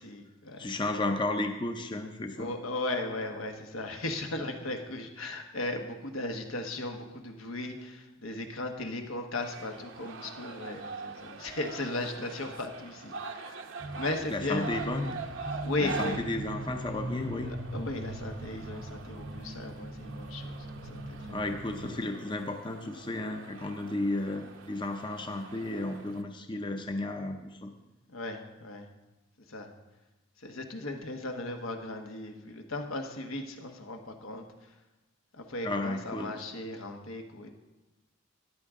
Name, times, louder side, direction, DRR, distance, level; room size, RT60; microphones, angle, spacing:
voice 1, 0.0-0.7 2.4-13.6 13.9-14.7 15.6-16.2 17.7-21.5 28.1-28.9 29.5-29.7 30.4-34.4 35.3-37.5, left 2 dB, 80° left, 4 dB, 1.2 m, -36 dB
voice 2, 0.6-2.5 14.3-15.2 15.8-17.5 21.3-27.7 35.6-36.3, left 2 dB, 25° left, 5 dB, 0.6 m, -33 dB
sound 1, 9.4-26.2, right 4 dB, 65° right, 0.8 m, -44 dB
sound 2, 13.8-22.0, right 1 dB, 35° right, 0.7 m, -41 dB
14.0 x 10.0 x 3.6 m, 1.1 s
head